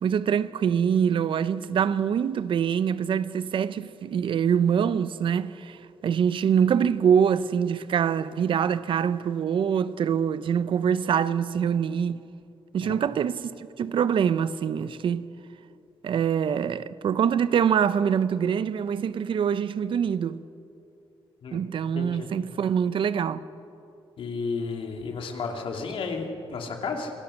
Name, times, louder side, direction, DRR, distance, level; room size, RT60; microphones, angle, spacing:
voice 1, 0.0-5.8 6.0-12.2 12.7-15.3 16.0-20.4 21.5-23.4, right 8 dB, 65° right, 0.7 m, -24 dB
voice 2, 21.9-22.3 24.2-27.1, left 4 dB, 70° left, 2.7 m, -32 dB
26.5 x 17.0 x 6.5 m
cardioid pair, 115°, 9 cm